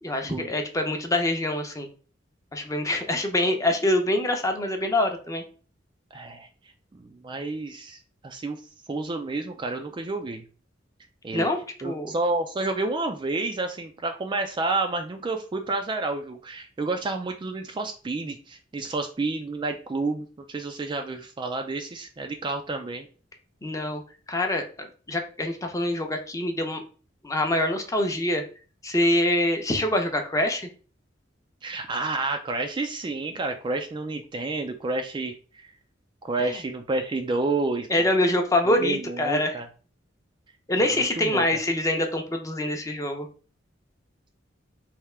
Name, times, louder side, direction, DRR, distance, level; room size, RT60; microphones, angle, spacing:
voice 1, 0.0-1.9 2.5-5.4 11.3-11.6 11.8-12.1 23.6-24.0 24.3-26.8 27.2-28.4 28.8-30.7 36.4-36.6 37.9-39.5 40.7-43.3, left 1 dB, 15° left, 4 dB, 0.6 m, -25 dB
voice 2, 6.1-6.5 6.9-8.6 8.9-10.4 11.2-11.5 11.8-23.1 31.6-35.7 36.2-38.1 38.7-39.7 41.1-41.6, right 3 dB, 25° right, 5 dB, 0.3 m, -30 dB
3.4 x 2.8 x 3.2 m, 0.38 s
head